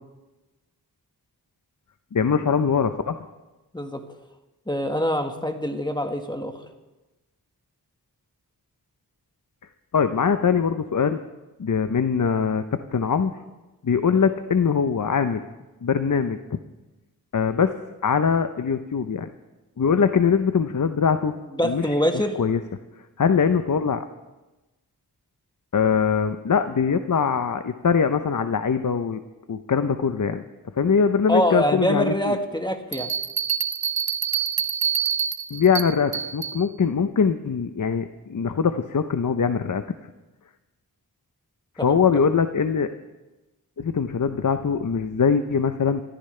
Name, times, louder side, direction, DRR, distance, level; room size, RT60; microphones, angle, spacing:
voice 1, 2.1-3.2 9.9-11.2 11.6-12.6 12.9-13.3 13.8-15.4 15.8-16.6 17.3-17.8 18.0-19.3 19.8-21.3 21.6-21.8 22.1-22.6 23.2-24.0 25.7-29.2 29.5-30.4 30.8-32.4 35.5-39.8 41.8-42.9 43.8-46.0, left 6 dB, 55° left, 9 dB, 0.8 m, -22 dB
voice 2, 4.7-6.6 21.6-22.4 31.3-33.1 41.8-42.0, equal, 10° left, 4 dB, 1.6 m, -24 dB
Bell, 32.9-36.6, right 8 dB, 65° right, 1.0 m, -26 dB
28.5 x 14.0 x 3.3 m, 1.1 s
wide cardioid pair, 60°, 38 cm